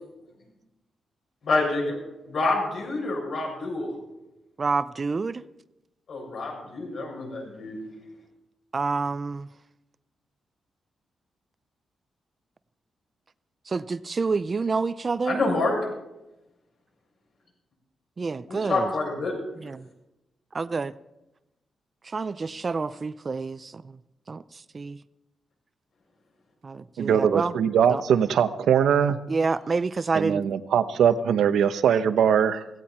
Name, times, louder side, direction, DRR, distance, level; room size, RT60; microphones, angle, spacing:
voice 1, 1.4-2.0 2.3-3.9 6.1-7.8 15.3-15.8 18.5-19.3, left 3 dB, 60° left, -1 dB, 7.4 m, -27 dB
voice 2, 4.6-5.4 8.7-9.5 13.7-15.4 18.2-18.9 19.6-19.8 20.5-20.9 22.1-23.8 24.3-24.4 24.7-25.0 26.6-27.5 27.9-28.0 29.3-30.4, right 4 dB, 30° right, 15 dB, 0.4 m, -28 dB
voice 3, 27.0-29.2 30.1-32.6, right 8 dB, 90° right, 11 dB, 0.9 m, -21 dB
17.0 x 16.5 x 4.4 m, 0.95 s
wide cardioid pair, 135°, 0 cm